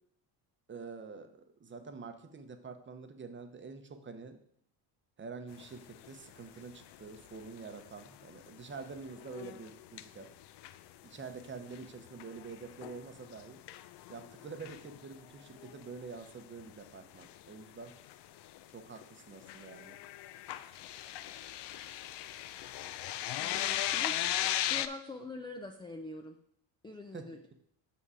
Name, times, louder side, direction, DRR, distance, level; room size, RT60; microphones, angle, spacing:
voice 1, 0.7-4.4 5.2-10.3 11.0-13.6 14.1-17.9 18.7-20.0 20.6-20.7 27.1-27.3, right 4 dB, 25° right, 8 dB, 0.8 m, -47 dB
sound 1, 5.6-6.1 6.4-6.5 6.9-7.0 7.3-8.5 8.7-10.8 11.2-15.1 15.5-15.9 16.2-16.3 16.6-16.7 17.2-19.0 19.4-24.9, left 12 dB, 60° left, 0.5 m, -38 dB
voice 2, 23.4-24.2 24.7-26.4 26.8-27.4, left 2 dB, 10° left, 4 dB, 0.4 m, -44 dB
6.2 x 5.7 x 4.8 m, 0.69 s
cardioid pair, 105°, 48 cm